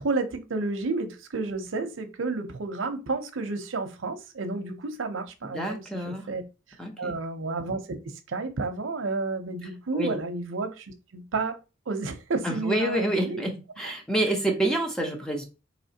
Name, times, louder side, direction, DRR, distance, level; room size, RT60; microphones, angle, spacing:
voice 1, 0.0-6.5 7.0-11.6 11.9-13.5, right 3 dB, 90° right, 0.7 m, -31 dB
voice 2, 5.4-6.3 6.8-7.1 9.9-10.2 12.4-15.4, right 1 dB, 5° left, 0.7 m, -28 dB
4.2 x 2.9 x 2.8 m
head